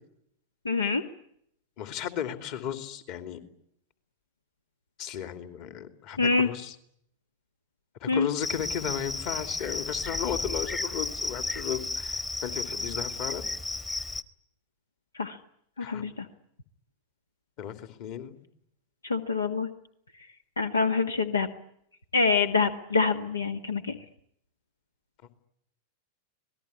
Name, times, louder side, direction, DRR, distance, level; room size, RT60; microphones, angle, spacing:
voice 1, 0.6-1.0 6.2-6.5 8.1-8.3 15.1-15.4 15.8-16.3 19.0-19.7 20.6-21.5 22.1-24.0, left 4 dB, 75° left, 9 dB, 1.5 m, -25 dB
voice 2, 1.8-3.4 5.0-6.7 8.0-13.4 15.8-16.0 17.6-18.4, left 9 dB, 45° left, 8 dB, 2.9 m, -34 dB
Cricket, 8.4-14.2, left 2 dB, 10° left, 1.3 m, -33 dB
26.5 x 20.0 x 9.9 m, 0.72 s
figure-of-eight pair, 90°, 0 cm